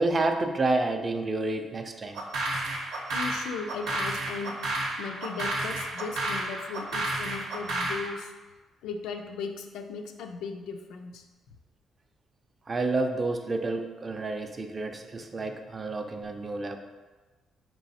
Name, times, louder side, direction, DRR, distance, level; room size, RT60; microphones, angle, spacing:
voice 1, 0.0-2.3 12.7-16.8, right 2 dB, 30° right, 5 dB, 0.4 m, -29 dB
sound 1, 2.1-8.1, right 2 dB, 85° right, 0.7 m, -31 dB
voice 2, 3.1-4.6 5.0-8.3 8.8-11.2, left 5 dB, 90° left, 5 dB, 0.3 m, -37 dB
4.6 x 3.0 x 2.7 m, 1.3 s
cardioid pair, 90°, 0 cm